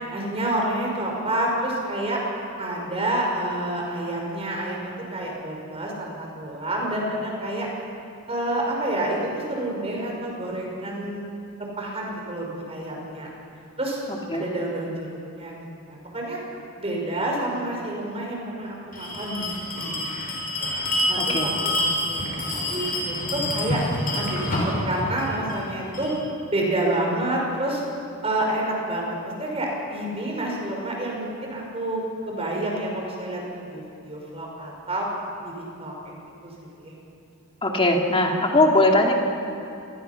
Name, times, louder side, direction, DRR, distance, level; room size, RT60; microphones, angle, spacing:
voice 1, 0.1-2.2 2.6-7.7 8.3-11.2 11.6-13.3 13.8-14.0 14.3-15.6 15.9-16.4 16.8-20.3 20.6-20.7 21.1-23.8 24.1-26.1 26.5-27.8 28.2-35.1 35.4-35.5 35.8-36.9, right 1 dB, 30° right, -1 dB, 5.4 m, -29 dB
Bell, 18.9-26.2, left 1 dB, 40° left, 5.6 m, -27 dB
voice 2, 37.6-39.1, left 2 dB, 25° left, 1 dB, 2.4 m, -19 dB
27.0 x 21.0 x 5.9 m, 2.8 s
head